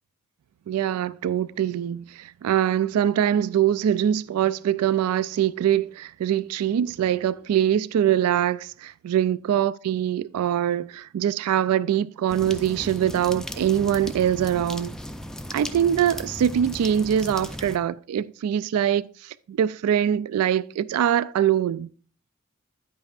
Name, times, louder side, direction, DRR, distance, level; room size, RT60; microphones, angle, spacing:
voice 1, 0.7-15.0 15.5-21.9, right 10 dB, 85° right, 0.3 m, -23 dB
sound 1, 12.3-17.8, equal, 5° left, 0.4 m, -36 dB
10.0 x 8.6 x 2.4 m
head